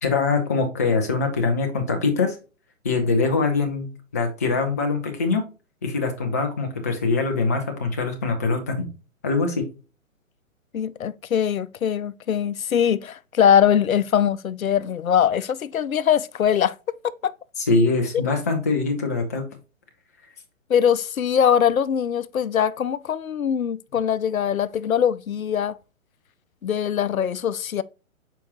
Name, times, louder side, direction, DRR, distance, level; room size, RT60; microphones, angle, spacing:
voice 1, 0.0-2.4 2.8-5.5 5.8-8.9 9.2-9.7 17.6-19.5, left 4 dB, 15° left, 0.4 m, -23 dB
voice 2, 10.7-16.7 17.2-17.3 20.7-25.8 26.6-27.8, left 8 dB, 85° left, 0.6 m, -22 dB
6.8 x 4.8 x 2.9 m
figure-of-eight pair, 135°, 40 cm